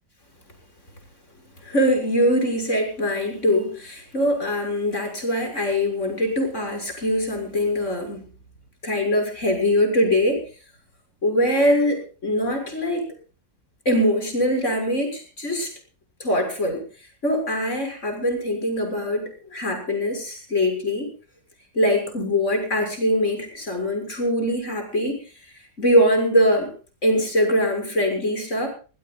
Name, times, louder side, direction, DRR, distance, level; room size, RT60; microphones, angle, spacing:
voice 1, 1.6-8.2 8.8-10.4 11.2-13.1 13.8-15.7 16.2-16.8 17.2-21.1 21.7-25.2 25.8-26.7 27.0-28.7, equal, 40° left, 4 dB, 6.8 m, -22 dB
22.5 x 20.5 x 2.4 m, 0.37 s
omnidirectional pair, 1.9 m